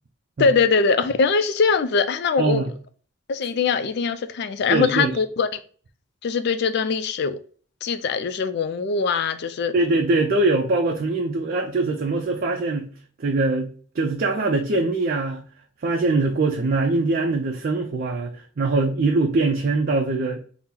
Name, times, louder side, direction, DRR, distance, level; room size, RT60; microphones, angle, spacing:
voice 1, 0.4-2.7 3.3-5.5 6.2-7.4 7.8-9.7, left 5 dB, 60° left, 0.4 m, -22 dB
voice 2, 2.4-2.7 4.7-5.2 9.7-12.9 13.2-15.4 15.8-20.5, right 3 dB, 50° right, 0.5 m, -22 dB
3.7 x 2.0 x 4.3 m
head